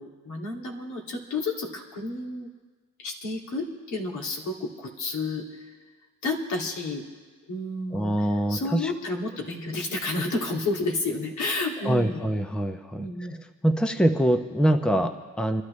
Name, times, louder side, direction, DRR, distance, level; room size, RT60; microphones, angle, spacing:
voice 1, 0.0-2.5 3.0-5.7 6.2-7.0 7.5-12.2 13.0-13.4 14.9-15.0, left 2 dB, 75° left, 0 dB, 2.4 m, -31 dB
voice 2, 7.9-8.9 11.8-13.3 13.6-15.6, right 1 dB, 5° left, 7 dB, 0.8 m, -24 dB
27.0 x 12.0 x 3.2 m, 1.4 s
cardioid pair, 90°, 30 cm